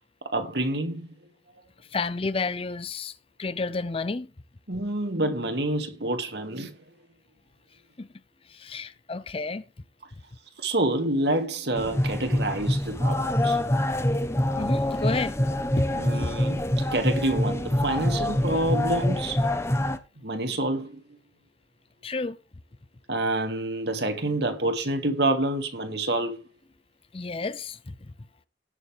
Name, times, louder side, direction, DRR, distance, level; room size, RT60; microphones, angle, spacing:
voice 1, 0.3-1.1 4.7-6.8 10.6-13.6 15.9-19.4 20.2-21.2 23.1-26.4, right 1 dB, 60° right, 2.1 m, -28 dB
voice 2, 1.9-3.1 3.4-4.3 8.0-8.1 8.5-9.6 14.6-15.4 15.8-15.9 16.2-16.3 22.0-22.4 27.1-27.9, left 3 dB, 30° left, 0.6 m, -30 dB
sound 1, 11.8-20.0, left 1 dB, 15° left, 1.0 m, -25 dB
18.0 x 6.8 x 3.4 m
head